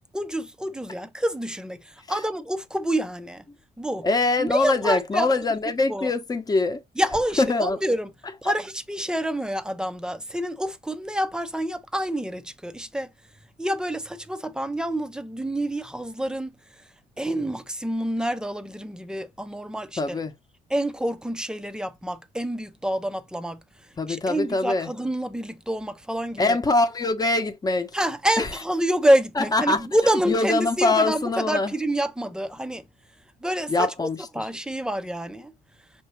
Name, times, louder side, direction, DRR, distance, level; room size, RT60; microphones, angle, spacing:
voice 1, 0.1-3.4 3.8-4.1 4.4-5.3 5.9-6.1 7.0-8.1 8.4-13.1 13.6-16.9 17.2-20.2 20.7-26.6 27.9-32.8 33.4-34.1 34.3-35.5, right 1 dB, 5° right, 0.6 m, -27 dB
voice 2, 4.0-6.8 7.4-7.8 20.0-20.3 24.0-24.9 26.4-28.0 28.4-28.5 29.4-29.9 30.3-31.7 33.7-34.5, left 3 dB, 20° left, 0.9 m, -23 dB
5.7 x 2.7 x 3.1 m
cardioid pair, 110°, 17 cm